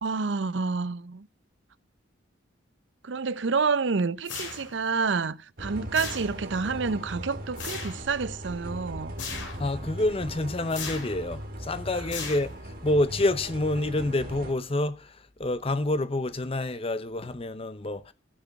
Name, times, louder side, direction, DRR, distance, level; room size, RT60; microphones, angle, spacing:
voice 1, 0.0-1.3 3.0-9.1, right 4 dB, 70° right, 0.6 m, -28 dB
sound 1, 4.2-4.9 5.9-6.6 7.6-8.1 9.2-9.7 10.7-11.2 12.1-12.8, left 5 dB, 75° left, 3.3 m, -37 dB
sound 2, 5.6-14.5, equal, 50° right, 2.0 m, -39 dB
voice 2, 9.6-18.1, left 2 dB, 30° left, 0.7 m, -28 dB
14.5 x 6.1 x 5.8 m
head